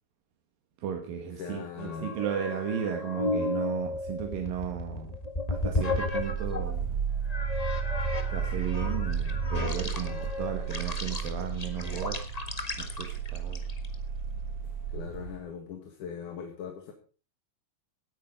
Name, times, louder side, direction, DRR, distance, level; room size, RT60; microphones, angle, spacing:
voice 1, 0.8-5.2 5.5-6.9 8.3-12.2 12.8-13.6, right 8 dB, 80° right, 4 dB, 3.3 m, -35 dB
voice 2, 1.4-2.1 14.9-16.9, left 7 dB, 65° left, 4 dB, 3.3 m, -40 dB
sound 1, 1.8-6.7 7.3-13.9, left 2 dB, 35° left, 0.6 m, -34 dB
sound 2, 5.5-15.4, right 7 dB, 50° right, 2.1 m, -33 dB
18.0 x 9.6 x 5.2 m, 0.37 s
omnidirectional pair, 4.0 m